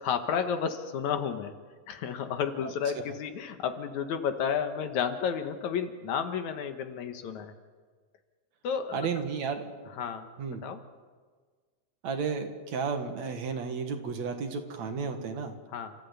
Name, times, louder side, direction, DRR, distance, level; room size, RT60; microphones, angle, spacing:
voice 1, 0.0-1.6 1.9-7.5 8.6-9.0 10.0-10.3 10.6-10.8 15.7-15.9, left 7 dB, 70° left, 8 dB, 2.5 m, -31 dB
voice 2, 8.9-9.9 10.4-10.6 12.0-15.5, right 5 dB, 65° right, 6 dB, 2.8 m, -33 dB
29.5 x 15.0 x 8.3 m, 1.5 s
omnidirectional pair, 3.6 m